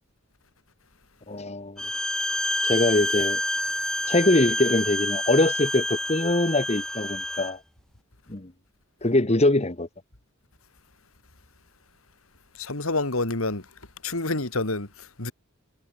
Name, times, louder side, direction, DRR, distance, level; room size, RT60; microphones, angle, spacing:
voice 1, 1.3-1.8 2.6-3.4 4.1-7.6 8.3-8.5 9.0-9.9, left 2 dB, 30° left, 1.6 m, -23 dB
Bowed string instrument, 1.8-7.5, left 1 dB, 5° left, 1.0 m, -28 dB
voice 2, 12.6-13.7 14.0-15.3, left 2 dB, 85° left, 3.1 m, -28 dB
head